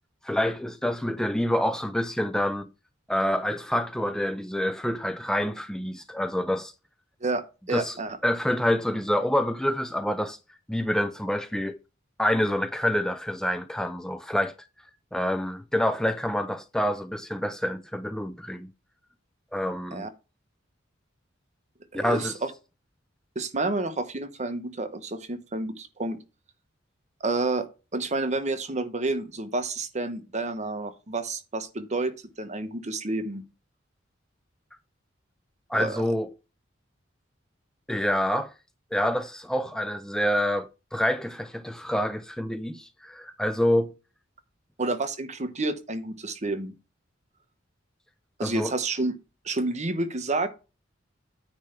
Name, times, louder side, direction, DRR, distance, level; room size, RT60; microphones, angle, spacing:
voice 1, 0.2-2.7 3.1-6.7 7.7-8.0 8.2-10.4 10.7-11.8 12.2-14.5 15.1-18.7 19.5-20.1 21.9-22.4 35.7-36.3 37.9-38.5 38.9-43.9 48.4-48.7, equal, 5° left, 0.4 m, -27 dB
voice 2, 7.2-8.2 19.9-20.1 21.9-22.5 23.3-26.2 27.2-27.7 27.9-32.1 32.4-33.4 35.7-36.0 44.8-46.7 48.4-49.1 49.4-50.5, right 2 dB, 35° right, 1.0 m, -29 dB
9.5 x 3.3 x 6.8 m
head